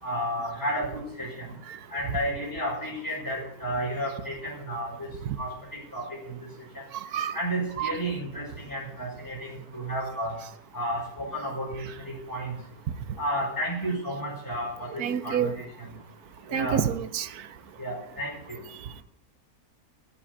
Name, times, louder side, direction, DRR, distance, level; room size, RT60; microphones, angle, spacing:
voice 1, 0.0-1.5 1.9-5.1 5.4-6.5 6.7-6.8 7.3-10.4 10.7-12.5 13.2-15.9 16.5-16.8 17.8-18.6, equal, 10° left, 5.7 m, -32 dB
voice 2, 7.0-7.4 7.8-7.9 15.0-15.5 16.5-17.3, right 9 dB, 90° right, 1.3 m, -27 dB
10.0 x 9.5 x 9.6 m
omnidirectional pair, 1.6 m